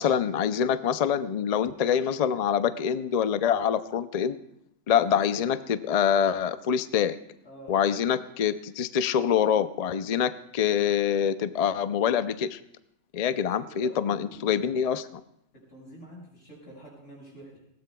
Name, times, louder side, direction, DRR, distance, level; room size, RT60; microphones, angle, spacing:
voice 1, 0.0-4.4 4.9-7.2 7.7-12.6 13.1-15.0, left 8 dB, 55° left, 12 dB, 0.4 m, -25 dB
voice 2, 4.9-5.5 7.4-7.8 13.6-14.7 15.5-17.6, equal, 80° left, -3 dB, 5.9 m, -47 dB
19.5 x 16.5 x 2.3 m, 0.80 s
omnidirectional pair, 1.3 m